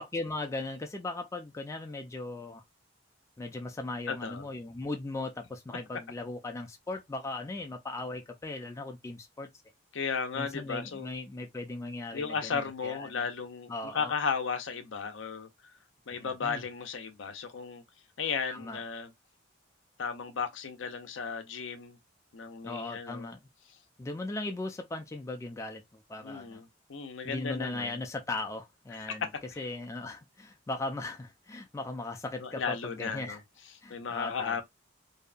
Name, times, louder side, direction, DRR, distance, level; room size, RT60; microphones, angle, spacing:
voice 1, 0.0-2.6 3.4-9.5 10.3-13.2 13.7-14.1 16.1-16.6 18.5-18.8 22.6-23.4 24.0-26.6 27.2-29.3 29.6-33.4 33.8-34.6, left 2 dB, 15° left, 0.3 m, -38 dB
voice 2, 4.1-4.5 9.9-11.1 12.1-15.5 16.1-17.8 18.2-19.1 20.0-22.0 22.3-23.3 26.2-28.0 29.1-29.7 32.4-33.4 33.9-34.6, left 5 dB, 75° left, 0.5 m, -35 dB
2.7 x 2.1 x 2.4 m
head